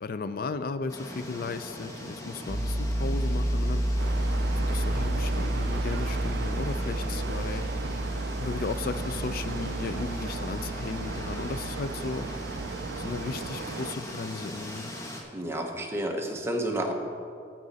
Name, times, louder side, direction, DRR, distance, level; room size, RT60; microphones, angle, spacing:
voice 1, 0.0-4.1 4.6-7.7 8.4-12.3 13.0-14.9, left 4 dB, 50° left, 12 dB, 0.4 m, -35 dB
sound 1, 0.9-15.2, left 1 dB, 15° left, 1.0 m, -40 dB
Piano, 2.5-13.3, equal, 40° right, 1.5 m, -31 dB
sound 2, 4.0-14.0, right 5 dB, 60° right, 0.3 m, -37 dB
voice 2, 15.3-16.9, right 1 dB, 15° right, 2 dB, 0.8 m, -30 dB
12.0 x 7.4 x 4.0 m, 2.5 s
head